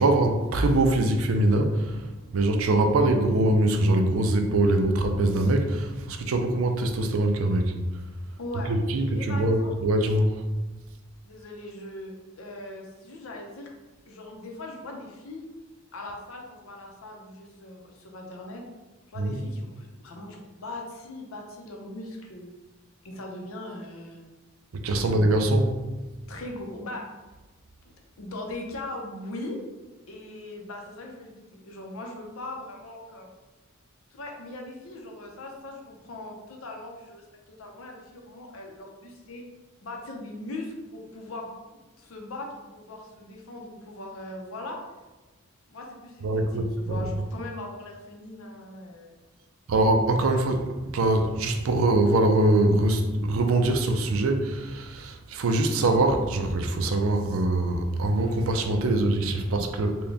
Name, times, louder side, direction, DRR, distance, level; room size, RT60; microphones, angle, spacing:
voice 1, 0.0-2.0 2.3-7.8 8.7-10.4 19.2-19.4 24.7-25.8 46.2-47.0 49.7-60.0, right 2 dB, 75° right, 5 dB, 0.5 m, -23 dB
voice 2, 8.4-8.7 9.1-9.7 10.6-10.8 11.2-13.7 14.1-15.5 15.9-18.6 19.1-22.5 23.0-24.2 25.0-25.1 26.3-27.0 28.2-29.6 30.1-33.3 34.1-39.4 39.8-41.5 42.0-42.5 42.7-44.8 45.7-49.1, left 2 dB, 75° left, 1 dB, 0.7 m, -40 dB
4.0 x 2.2 x 3.4 m, 1.2 s
head